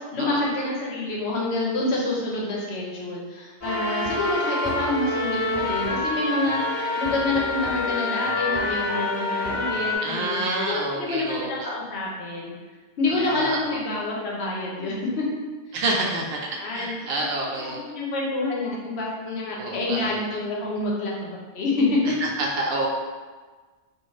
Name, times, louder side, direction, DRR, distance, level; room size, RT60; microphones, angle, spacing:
voice 1, 0.0-12.5 13.0-15.2 16.6-16.9 17.2-17.3 17.5-22.0, left 2 dB, 75° left, -3 dB, 0.9 m, -27 dB
sound 1, 3.6-10.0, left 2 dB, 15° left, 1.2 m, -27 dB
voice 2, 10.0-11.5 13.1-13.8 15.7-16.4 16.7-17.8 19.6-20.2 22.2-22.9, right 2 dB, 70° right, -1 dB, 0.7 m, -28 dB
2.5 x 2.4 x 3.1 m, 1.4 s
omnidirectional pair, 1.1 m